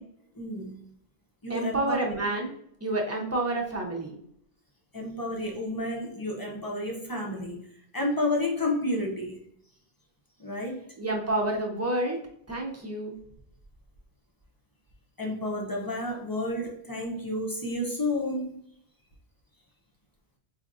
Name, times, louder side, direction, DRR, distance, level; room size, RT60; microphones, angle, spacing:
voice 1, 0.4-0.7 1.4-2.0 4.9-7.6 7.9-9.4 10.4-10.8 15.2-18.6, left 1 dB, 25° left, -2 dB, 0.5 m, -31 dB
voice 2, 1.5-2.5 2.8-4.2 11.0-12.2 12.5-13.2, right 2 dB, 15° right, -1 dB, 0.6 m, -29 dB
4.5 x 2.6 x 2.5 m, 0.70 s
omnidirectional pair, 1.1 m